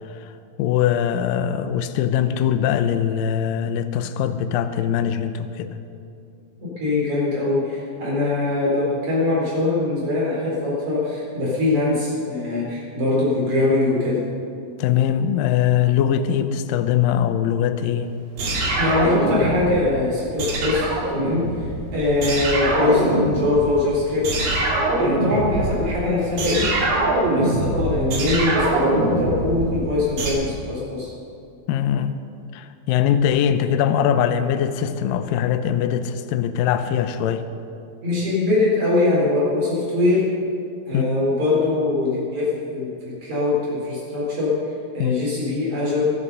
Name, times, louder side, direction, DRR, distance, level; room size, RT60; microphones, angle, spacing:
voice 1, 0.6-5.7 14.8-18.1 31.7-32.2 32.5-37.5 40.9-41.1 45.0-45.1, left 9 dB, 80° left, 2.2 m, -21 dB
voice 2, 6.6-14.2 18.8-24.7 24.9-26.7 27.2-31.1 38.0-40.3 40.9-46.0, left 2 dB, 50° right, 5.6 m, -22 dB
sound 1, 18.4-19.9 20.4-21.9 22.2-23.8 24.2-30.3, right 2 dB, 65° right, 4.1 m, -23 dB
23.5 x 8.4 x 5.5 m
omnidirectional pair, 4.4 m